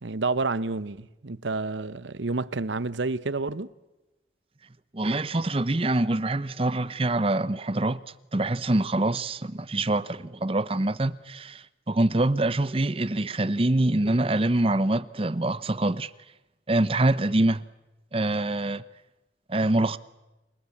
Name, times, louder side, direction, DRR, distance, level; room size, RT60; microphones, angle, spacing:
voice 1, 0.0-3.7, right 3 dB, 80° right, 0.9 m, -29 dB
voice 2, 4.9-8.0 8.3-16.1 16.7-17.6 18.1-18.8 19.5-20.0, right 2 dB, 30° right, 0.8 m, -25 dB
29.5 x 19.5 x 8.6 m
head